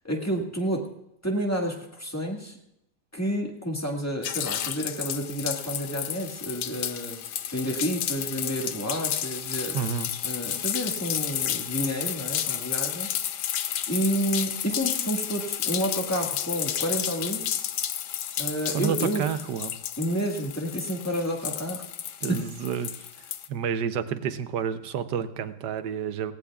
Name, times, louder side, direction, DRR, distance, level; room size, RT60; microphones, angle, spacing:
voice 1, 0.0-0.8 1.2-2.5 3.1-7.2 7.5-9.8 10.2-13.1 13.9-17.4 18.4-19.2 20.0-21.8 22.3-22.4, equal, 10° left, 0 dB, 1.6 m, -30 dB
sound 1, 4.2-23.5, left 10 dB, 75° left, 1.2 m, -32 dB
voice 2, 9.7-10.1 18.6-19.7 22.2-26.3, right 8 dB, 80° right, 10 dB, 1.4 m, -30 dB
18.5 x 16.5 x 2.4 m, 0.82 s
omnidirectional pair, 1.9 m